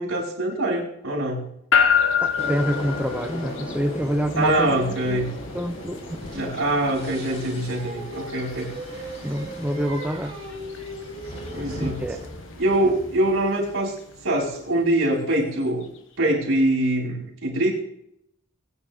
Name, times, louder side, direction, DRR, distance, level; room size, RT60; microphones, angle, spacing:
voice 1, 0.0-1.5 4.3-5.3 6.3-8.7 11.5-12.0 12.6-13.9 14.2-15.9 16.2-17.7, right 1 dB, 80° right, 5.0 m, -23 dB
sound 1, 1.7-16.0, left 7 dB, 60° left, 1.4 m, -30 dB
voice 2, 2.2-5.2 5.5-6.5 9.2-10.4 11.8-12.3, equal, 5° right, 0.6 m, -27 dB
sound 2, 2.4-13.3, equal, 30° left, 5.5 m, -38 dB
Singing, 7.3-12.5, right 1 dB, 25° right, 3.2 m, -38 dB
21.0 x 9.7 x 3.6 m
head